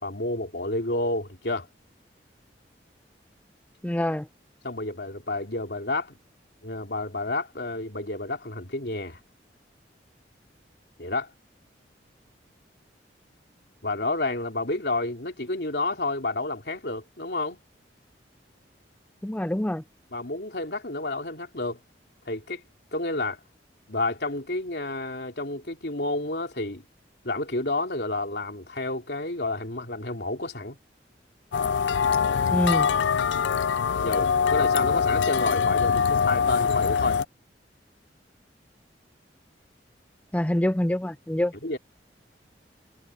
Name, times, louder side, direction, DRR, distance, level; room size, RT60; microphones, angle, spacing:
voice 1, 0.0-1.7 4.6-6.2 6.6-9.2 11.0-11.3 13.8-17.6 20.1-21.8 22.3-22.6 22.9-23.4 23.9-26.8 27.2-30.8 34.0-37.2 41.6-41.8, left 2 dB, 65° left, 3.5 m, -30 dB
voice 2, 3.8-4.3 19.2-19.8 32.5-32.9 40.3-41.5, left 1 dB, 10° left, 0.4 m, -25 dB
sound 1, 31.5-37.2, left 6 dB, 80° left, 0.4 m, -23 dB
head